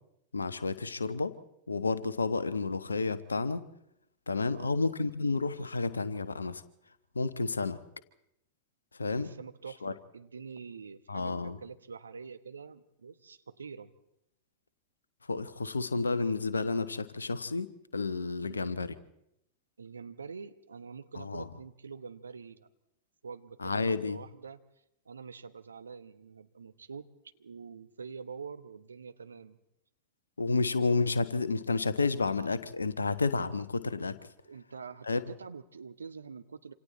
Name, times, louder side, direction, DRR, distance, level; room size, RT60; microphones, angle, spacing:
voice 1, 0.3-1.4 1.7-3.6 4.3-6.6 7.1-7.8 9.0-9.3 9.8-9.9 11.1-11.6 15.3-18.9 21.1-21.5 23.6-24.2 30.4-34.2 35.1-35.2, left 3 dB, 75° left, 14 dB, 1.1 m, -31 dB
voice 2, 4.4-4.8 9.2-13.9 18.4-18.7 19.8-22.7 23.2-24.6 25.0-29.6 34.4-36.7, right 5 dB, 75° right, 10 dB, 1.1 m, -46 dB
27.0 x 26.5 x 4.3 m, 0.80 s
figure-of-eight pair, 90°, 0 cm